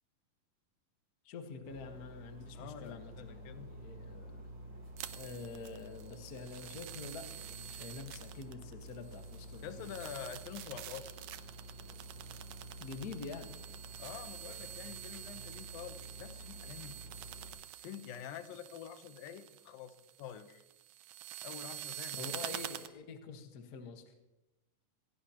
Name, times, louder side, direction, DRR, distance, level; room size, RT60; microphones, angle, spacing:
voice 1, 1.2-4.5 5.1-10.1 12.8-13.5 22.1-24.1, left 4 dB, 65° left, 5 dB, 0.9 m, -47 dB
sound 1, 1.6-17.5, right 1 dB, 45° right, 4.6 m, -50 dB
voice 2, 2.5-3.7 9.6-11.1 14.0-17.0 17.8-20.6 21.4-22.6, left 9 dB, 80° left, 10 dB, 2.6 m, -47 dB
sound 2, 5.0-22.9, right 13 dB, 75° right, 2.0 m, -47 dB
26.0 x 17.0 x 2.9 m, 0.96 s
omnidirectional pair, 4.1 m